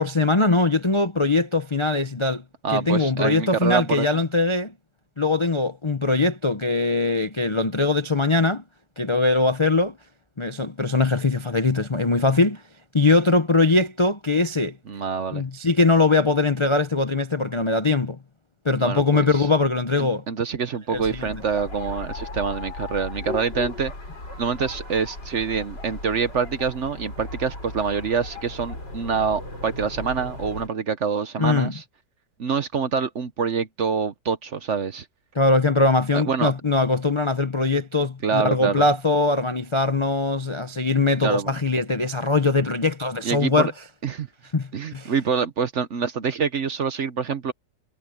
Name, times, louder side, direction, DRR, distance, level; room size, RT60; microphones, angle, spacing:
voice 1, 0.0-2.4 2.7-4.7 5.2-8.6 9.0-9.9 10.4-12.6 12.9-14.8 15.3-18.2 18.6-20.2 20.9-21.3 31.4-31.7 35.3-43.7 44.5-45.1, left 3 dB, 35° left, 0.4 m, -21 dB
voice 2, 2.6-4.1 14.9-15.4 18.8-19.5 20.0-23.9 24.4-31.8 32.4-35.1 36.1-36.5 38.2-38.9 41.2-41.5 43.2-43.7 44.0-44.3 44.7-47.5, right 6 dB, 50° right, 1.0 m, -26 dB
sound 1, 20.9-30.7, left 2 dB, 85° left, 9.0 m, -36 dB
omnidirectional pair, 1.9 m